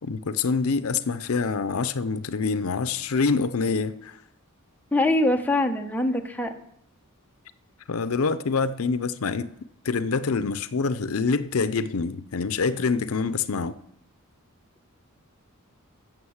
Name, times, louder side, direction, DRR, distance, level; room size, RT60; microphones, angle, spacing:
voice 1, 0.0-4.2 7.9-9.5 9.8-13.7, left 4 dB, 70° left, 0.6 m, -26 dB
voice 2, 4.9-6.5, left 1 dB, 10° left, 1.1 m, -23 dB
15.0 x 7.1 x 7.2 m
head